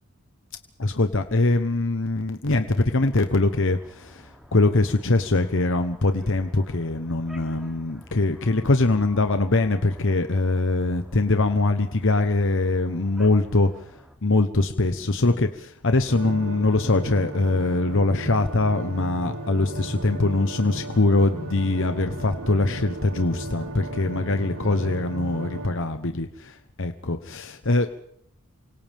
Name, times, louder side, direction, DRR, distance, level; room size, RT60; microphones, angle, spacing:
voice 1, 0.8-13.7 14.2-27.9, left 2 dB, 60° left, 7 dB, 1.1 m, -23 dB
sound 1, 3.1-14.2, equal, ahead, 2.9 m, -49 dB
sound 2, 16.1-25.7, right 1 dB, 65° right, 4.5 m, -35 dB
29.0 x 25.5 x 3.6 m, 0.66 s
head